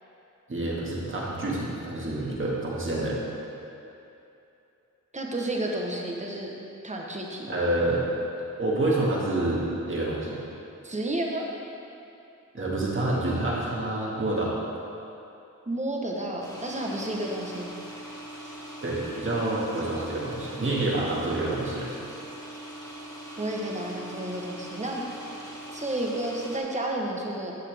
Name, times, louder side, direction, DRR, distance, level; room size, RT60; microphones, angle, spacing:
voice 1, 0.5-3.2 7.5-8.0 8.6-10.4 12.5-14.5 18.8-21.9, right 2 dB, 40° right, -5 dB, 1.8 m, -27 dB
voice 2, 5.1-6.5 6.8-7.5 10.8-11.5 15.7-17.7 23.4-25.0 25.7-27.5, right 1 dB, 20° right, -1 dB, 1.0 m, -31 dB
sound 1, 16.4-26.6, right 1 dB, 10° left, 2.0 m, -41 dB
11.5 x 8.3 x 3.4 m, 2.8 s
wide cardioid pair, 155°, 32 cm